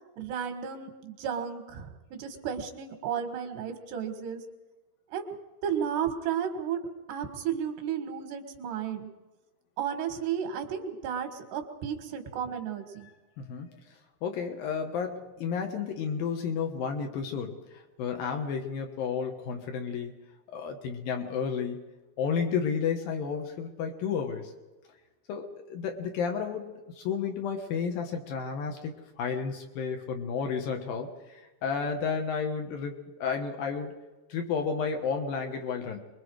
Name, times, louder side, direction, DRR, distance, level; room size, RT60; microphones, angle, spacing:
voice 1, 0.2-4.4 5.1-5.3 5.6-6.8 7.1-9.1 9.8-13.1, right 8 dB, 90° right, 7 dB, 3.8 m, -33 dB
voice 2, 13.4-13.7 14.2-17.6 18.0-20.2 20.5-21.8 22.2-24.5 25.3-34.0 34.3-36.0, left 6 dB, 70° left, 4 dB, 2.9 m, -32 dB
25.0 x 22.0 x 4.8 m, 1.2 s
omnidirectional pair, 4.6 m